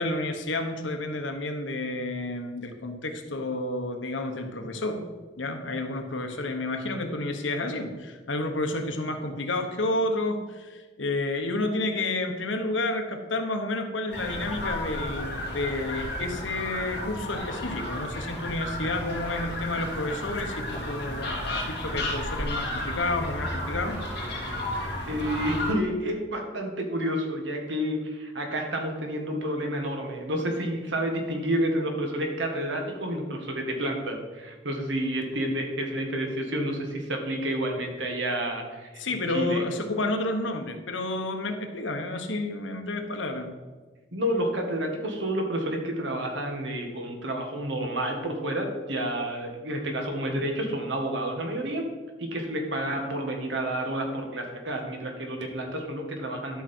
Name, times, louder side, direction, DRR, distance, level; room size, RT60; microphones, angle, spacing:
voice 1, 0.0-5.0 5.4-24.0 39.0-43.5, left 2 dB, 85° left, 5 dB, 1.2 m, -30 dB
sound 1, 14.1-25.7, left 1 dB, 60° left, 2.4 m, -33 dB
voice 2, 25.1-39.6 44.1-51.9 52.2-56.6, right 1 dB, 70° right, 3 dB, 1.8 m, -30 dB
12.0 x 6.0 x 4.5 m, 1.3 s
head